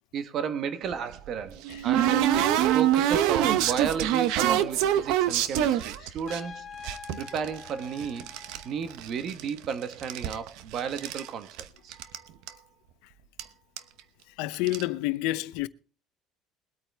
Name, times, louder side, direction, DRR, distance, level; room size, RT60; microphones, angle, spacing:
voice 1, 0.1-6.6 7.2-8.3 8.6-11.5 11.8-12.0, right 7 dB, 45° right, 1.3 m, -33 dB
sound 1, 0.9-6.4 6.8-8.6 8.9-9.7 9.9-11.3 11.6-11.7 11.9-12.2 12.5-12.6 13.4-13.5 13.8-14.0 14.5-14.8, right 11 dB, 75° right, 0.9 m, -25 dB
Trumpet, 6.3-8.9, left 6 dB, 30° left, 3.7 m, -45 dB
voice 2, 14.4-15.7, left 18 dB, 80° left, 0.7 m, -29 dB
22.0 x 8.8 x 3.4 m
cardioid pair, 130°, 0 cm